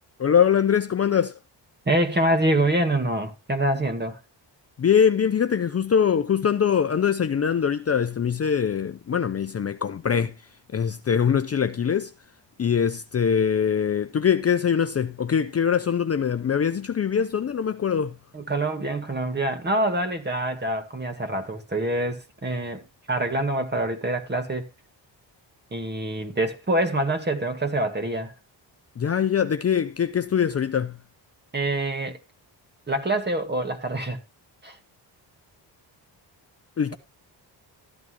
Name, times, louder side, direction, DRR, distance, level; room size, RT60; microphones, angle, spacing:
voice 1, 0.2-1.4 4.8-10.3 10.7-12.1 12.6-18.1 29.0-31.0 36.8-36.9, left 7 dB, 35° left, 0.6 m, -23 dB
voice 2, 1.9-4.2 18.3-24.7 25.7-28.3 31.5-32.2 32.9-34.2 34.6-34.8, right 1 dB, 25° right, 1.9 m, -25 dB
13.5 x 11.0 x 3.0 m
cardioid pair, 105°, 44 cm